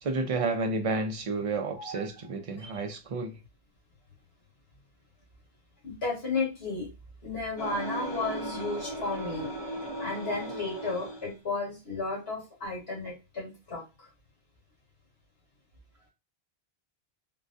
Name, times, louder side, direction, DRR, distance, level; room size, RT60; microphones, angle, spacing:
voice 1, 0.0-3.4, right 3 dB, 40° right, 0.6 m, -31 dB
voice 2, 1.7-2.1 2.6-2.7 5.8-6.9 7.2-9.5 10.0-14.1, left 3 dB, 75° left, 2.0 m, -33 dB
sound 1, 7.6-11.3, right 1 dB, 30° left, 0.6 m, -37 dB
3.8 x 2.2 x 2.6 m
omnidirectional pair, 1.0 m